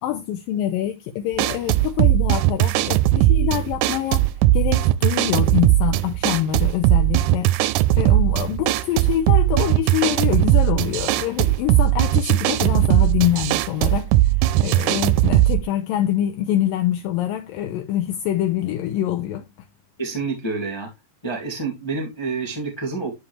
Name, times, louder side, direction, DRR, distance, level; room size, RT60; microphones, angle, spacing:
voice 1, 0.0-4.2 4.5-7.5 8.0-19.4, left 12 dB, 80° left, 2.4 m, -25 dB
sound 1, 1.3-15.6, right 15 dB, 90° right, 1.7 m, -18 dB
voice 2, 20.0-20.9 21.2-23.1, right 4 dB, 10° left, 1.3 m, -28 dB
11.0 x 4.9 x 3.2 m
omnidirectional pair, 4.2 m